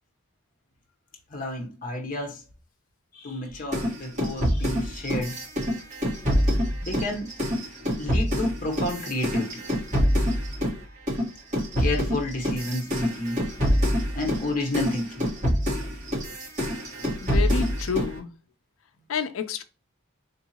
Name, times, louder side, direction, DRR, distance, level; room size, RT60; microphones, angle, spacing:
voice 1, 1.3-2.4 3.1-5.3 6.8-7.3 8.0-9.6 11.8-13.4 14.1-15.2, left 2 dB, 40° left, 0.9 m, -31 dB
sound 1, 3.7-10.8 11.1-18.2, equal, 35° right, 1.7 m, -26 dB
voice 2, 17.0-18.3 19.1-19.6, left 6 dB, 75° left, 0.5 m, -30 dB
3.6 x 2.7 x 2.8 m
head